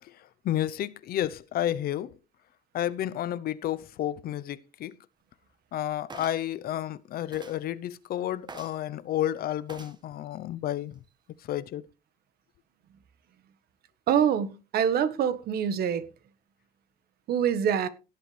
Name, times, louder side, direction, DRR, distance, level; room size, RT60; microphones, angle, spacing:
voice 1, 0.0-2.2 2.7-5.0 5.7-11.0 11.4-11.8, left 12 dB, 65° left, 0.8 m, -31 dB
sound 1, 6.1-6.5 7.3-7.6 8.5-8.8 9.7-10.0 10.8-10.9, right 4 dB, 25° right, 1.3 m, -45 dB
voice 2, 14.1-16.1 17.3-17.9, right 8 dB, 65° right, 1.5 m, -25 dB
17.5 x 7.9 x 3.4 m
cardioid pair, 110°, 17 cm